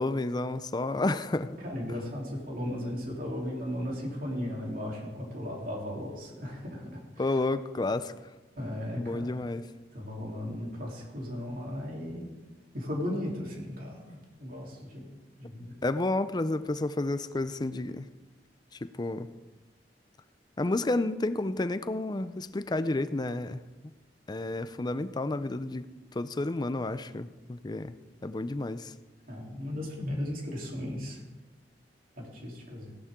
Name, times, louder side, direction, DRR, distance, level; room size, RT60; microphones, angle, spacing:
voice 1, 0.0-1.6 7.2-8.1 9.0-9.7 15.8-18.1 18.8-19.3 20.6-23.6 24.3-25.9 26.1-27.9 28.2-28.9, left 2 dB, 25° left, 13 dB, 0.5 m, -30 dB
voice 2, 1.6-7.4 8.6-9.3 9.9-12.3 12.7-15.7 29.3-31.2 32.2-32.9, left 1 dB, 55° right, -2 dB, 3.4 m, -36 dB
16.5 x 11.5 x 3.7 m, 1.2 s
head